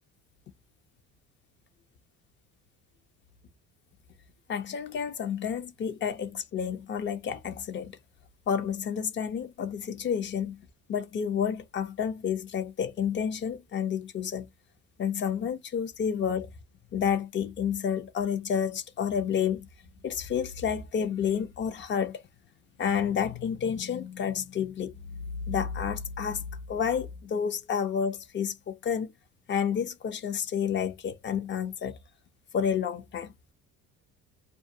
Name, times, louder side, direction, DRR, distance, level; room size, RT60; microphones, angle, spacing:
voice 1, 4.5-8.0 8.5-10.6 10.9-14.5 15.0-16.5 16.9-19.7 20.0-22.2 22.8-24.9 25.5-29.1 29.5-32.0 32.5-33.3, left 7 dB, 35° left, 0.6 m, -30 dB
2.3 x 2.2 x 2.6 m
cardioid pair, 110°, 31 cm